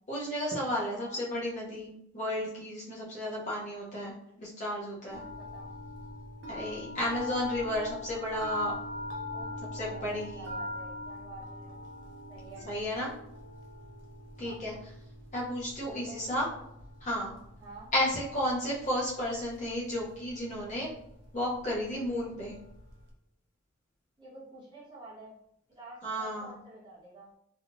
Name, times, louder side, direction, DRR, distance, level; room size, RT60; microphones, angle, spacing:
voice 1, 0.1-4.1 4.4-5.2 6.5-8.7 9.7-10.5 12.7-13.1 14.4-14.7 15.3-16.5 17.0-17.3 17.9-20.9 21.3-22.6 26.0-26.6, left 1 dB, 35° left, -5 dB, 0.7 m, -33 dB
sound 1, 5.1-23.1, left 1 dB, 60° right, 0.6 m, -43 dB
voice 2, 5.4-5.7 9.3-11.8 12.3-12.6 14.4-14.6 15.9-16.6 17.6-17.9 24.2-25.4 25.7-27.3, right 2 dB, 20° right, -8 dB, 1.1 m, -49 dB
3.4 x 2.3 x 2.5 m, 0.76 s
head